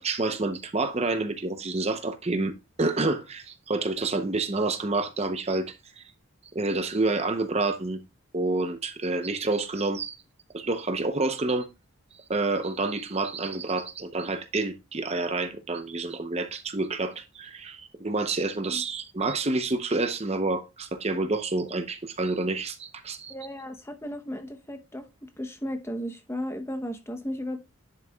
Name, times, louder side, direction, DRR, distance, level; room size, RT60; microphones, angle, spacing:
voice 1, 0.0-6.0 6.5-8.0 8.3-10.2 10.5-11.7 12.3-23.3, right 3 dB, 30° right, 0.7 m, -28 dB
voice 2, 23.3-25.1 25.4-27.6, equal, 10° left, 0.8 m, -35 dB
10.5 x 6.6 x 2.3 m
head